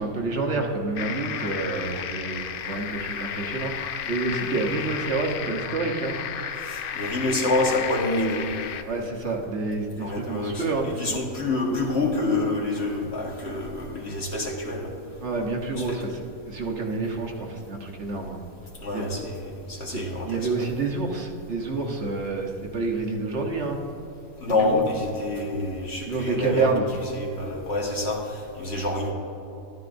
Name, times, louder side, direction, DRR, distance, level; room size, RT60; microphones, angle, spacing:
voice 1, 0.0-6.2 8.9-11.1 15.2-18.4 18.9-19.0 19.9-23.8 24.6-24.8 26.1-26.9, right 3 dB, 55° right, 1 dB, 1.2 m, -28 dB
sound 1, 1.0-8.8, left 8 dB, 70° left, 0.5 m, -33 dB
voice 2, 6.7-8.5 10.0-14.9 15.7-16.0 18.8-20.5 24.4-26.7 27.1-29.1, left 2 dB, 50° left, -1 dB, 1.6 m, -27 dB
13.0 x 11.5 x 2.6 m, 2.9 s
omnidirectional pair, 1.4 m